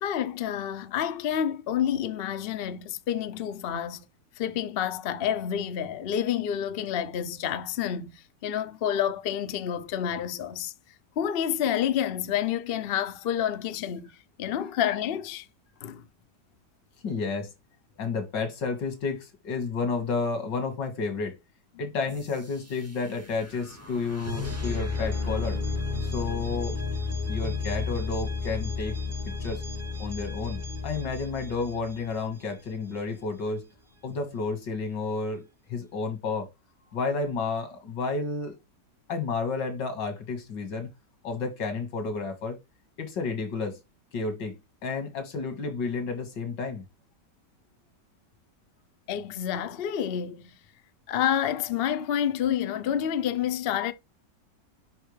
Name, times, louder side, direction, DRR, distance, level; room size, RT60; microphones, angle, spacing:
voice 1, 0.0-4.0 4.4-10.7 11.2-14.1 14.4-15.5 15.8-16.0 49.1-50.6 51.1-53.9, left 9 dB, 65° left, 0.6 m, -29 dB
voice 2, 17.0-17.5 18.0-21.4 21.8-25.6 26.0-26.8 27.3-29.0 29.4-29.6 30.0-33.7 34.0-36.5 36.9-38.5 39.1-40.9 41.2-42.6 43.0-43.8 44.1-44.5 44.8-46.8, left 4 dB, 85° left, 2.2 m, -31 dB
sound 1, 22.1-32.9, left 4 dB, 15° right, 0.5 m, -33 dB
5.5 x 5.5 x 3.2 m
omnidirectional pair, 1.9 m